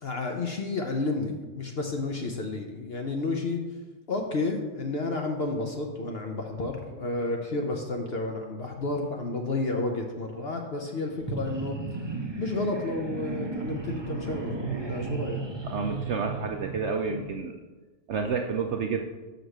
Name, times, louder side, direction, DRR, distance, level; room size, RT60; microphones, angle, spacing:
voice 1, 0.0-3.6 4.1-15.4, left 2 dB, 55° left, 2 dB, 0.8 m, -31 dB
sound 1, 11.2-17.4, right 3 dB, 25° right, 0.7 m, -35 dB
voice 2, 15.6-17.6 18.1-19.0, right 5 dB, 65° right, 3 dB, 0.7 m, -29 dB
5.9 x 5.3 x 6.5 m, 1.2 s
omnidirectional pair, 1.6 m